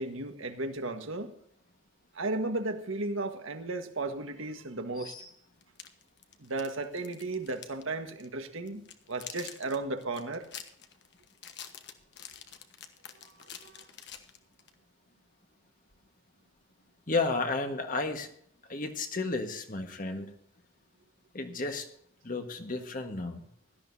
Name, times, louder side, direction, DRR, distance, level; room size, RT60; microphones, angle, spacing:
voice 1, 0.0-1.3 2.1-5.1 6.4-10.4 13.6-13.8, right 2 dB, 80° right, 6 dB, 1.5 m, -35 dB
sound 1, 5.6-7.8 8.1-8.3 8.7-14.7, left 9 dB, 60° left, 1.3 m, -47 dB
voice 2, 17.1-18.3 18.7-20.3 21.3-21.9 22.2-23.5, left 3 dB, 40° left, 5 dB, 1.6 m, -32 dB
17.5 x 12.5 x 2.8 m, 0.67 s
head